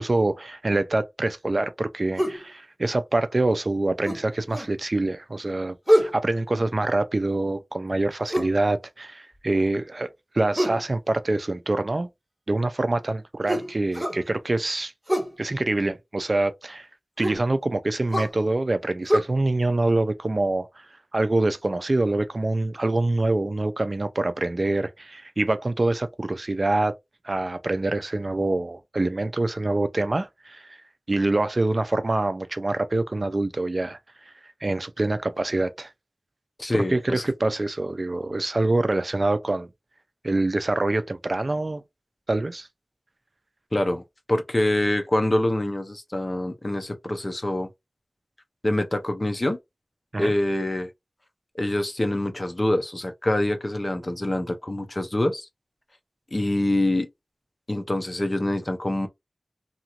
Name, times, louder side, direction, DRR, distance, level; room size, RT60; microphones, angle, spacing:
voice 1, 0.0-10.1 10.3-12.1 12.5-14.9 15.4-16.9 17.2-20.7 21.1-26.9 27.2-30.8 31.1-34.0 34.6-35.9 36.7-39.7 40.2-41.8 42.3-42.7 50.1-50.3, right 2 dB, 55° right, 0.4 m, -25 dB
sound 1, 2.2-2.4 4.0-4.7 5.9-6.2 8.3-8.6 10.5-10.9 13.5-14.2 15.1-15.3 17.2-17.4 18.1-18.3 19.1-19.2, equal, 5° right, 1.4 m, -24 dB
voice 2, 36.6-37.3 43.7-44.0 44.3-47.7 48.6-49.6 50.2-50.9 51.5-55.5 56.3-57.1 57.7-59.1, left 1 dB, 40° left, 0.7 m, -25 dB
2.9 x 2.4 x 2.9 m
wide cardioid pair, 55°, 0 cm